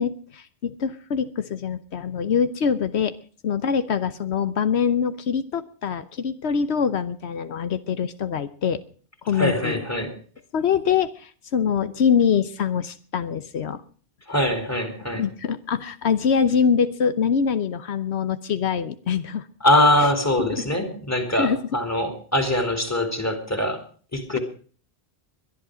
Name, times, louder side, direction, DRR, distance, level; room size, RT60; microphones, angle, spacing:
voice 1, 0.0-3.1 3.4-8.8 9.2-9.8 10.5-13.8 15.1-19.4 20.4-20.6 21.4-21.6, left 7 dB, 85° left, 12 dB, 1.2 m, -24 dB
voice 2, 9.3-10.1 14.3-15.2 19.6-23.8 24.1-24.4, left 1 dB, 15° left, 6 dB, 3.2 m, -23 dB
22.5 x 11.0 x 5.0 m, 0.43 s
omnidirectional pair, 1.1 m